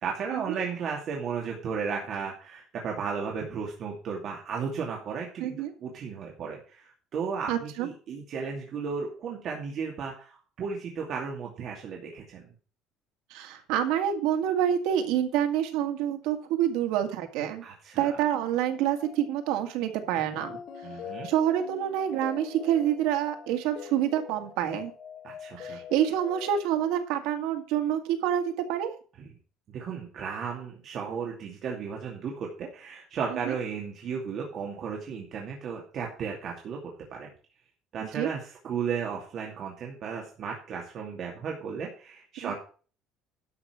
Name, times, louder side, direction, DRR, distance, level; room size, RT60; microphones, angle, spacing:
voice 1, 0.0-12.4 17.6-18.2 20.8-21.3 25.2-25.8 29.2-29.3 29.7-37.3 37.9-42.6, right 6 dB, 45° right, 0 dB, 2.5 m, -35 dB
voice 2, 5.4-5.7 7.5-7.9 13.3-17.6 18.0-20.6 21.2-24.9 25.6-28.4 28.7-28.9 33.5-33.6 38.2-38.3 42.4-42.6, right 10 dB, 85° right, 5 dB, 2.1 m, -27 dB
sound 1, 18.7-26.9, left 8 dB, 50° left, 3.0 m, -44 dB
12.0 x 5.9 x 6.1 m, 0.39 s
cardioid pair, 155°, 0 cm